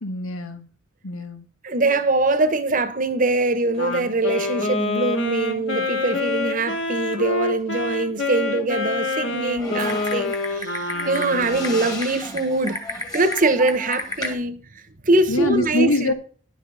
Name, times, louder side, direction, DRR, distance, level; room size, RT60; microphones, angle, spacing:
voice 1, 0.0-0.7 1.0-1.5 15.3-16.1, left 2 dB, 85° left, 1.6 m, -24 dB
voice 2, 1.6-16.1, right 2 dB, 40° right, 1.1 m, -23 dB
Wind instrument woodwind instrument, 3.7-12.0, left 2 dB, 60° left, 2.2 m, -27 dB
Typing, 9.6-14.3, left 2 dB, 20° left, 1.9 m, -32 dB
11.0 x 7.0 x 5.6 m
head